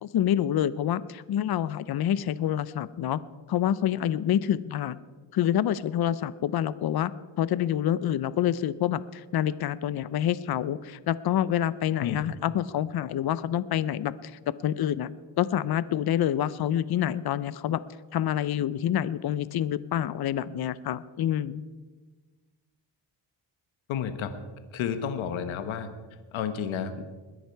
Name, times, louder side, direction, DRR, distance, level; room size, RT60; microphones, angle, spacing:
voice 1, 0.0-3.2 3.5-5.0 5.3-7.1 7.4-15.1 15.4-17.8 18.1-21.6, left 11 dB, 55° left, 17 dB, 0.7 m, -27 dB
voice 2, 23.9-24.3 24.7-25.9 26.3-27.0, left 8 dB, 85° left, 9 dB, 1.3 m, -30 dB
21.0 x 10.0 x 4.6 m, 1.3 s
cardioid pair, 95°, 46 cm